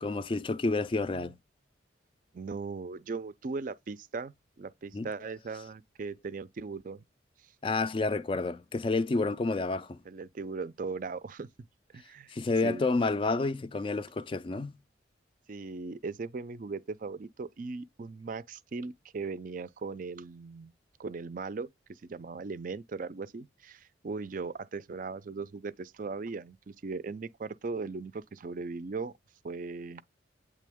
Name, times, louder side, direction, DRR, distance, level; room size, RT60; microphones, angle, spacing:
voice 1, 0.0-1.3 4.9-5.1 7.6-10.0 12.3-14.7, left 3 dB, 25° left, 0.3 m, -29 dB
voice 2, 2.3-7.0 10.1-11.5 11.9-12.3 12.6-12.9 15.5-20.7 21.0-29.1 29.4-30.0, right 4 dB, 45° right, 0.4 m, -38 dB
8.4 x 3.3 x 3.5 m
head